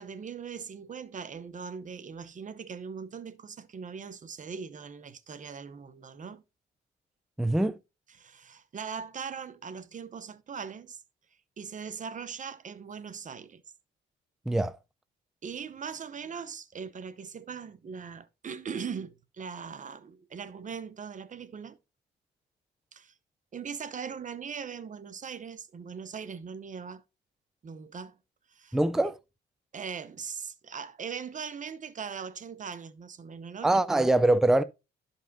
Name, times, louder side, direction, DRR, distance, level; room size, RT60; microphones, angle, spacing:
voice 1, 0.0-6.4 8.1-11.0 11.6-13.6 15.4-21.8 22.9-23.1 23.5-27.0 27.6-28.2 28.5-28.8 29.7-33.8, right 6 dB, 40° right, 0.8 m, -40 dB
voice 2, 7.4-7.8 14.5-14.7 28.7-29.2 33.6-34.6, right 2 dB, ahead, 0.4 m, -23 dB
12.0 x 5.4 x 2.6 m
cardioid pair, 90°, 20 cm